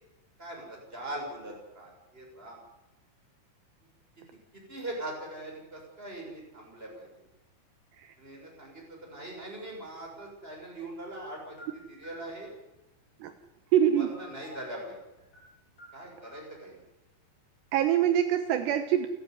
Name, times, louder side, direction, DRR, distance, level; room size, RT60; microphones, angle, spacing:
voice 1, 0.4-2.6 4.5-7.1 8.2-12.5 14.0-15.0 15.9-16.8, right 1 dB, 10° right, 0 dB, 7.2 m, -41 dB
sound 1, 11.1-12.3 13.8-14.7 15.2-15.5 15.8-16.4, left 1 dB, 20° left, 8.5 m, -51 dB
voice 2, 13.7-14.1 17.7-19.1, right 10 dB, 75° right, 8 dB, 3.2 m, -24 dB
29.0 x 13.5 x 9.6 m, 0.98 s
omnidirectional pair, 5.2 m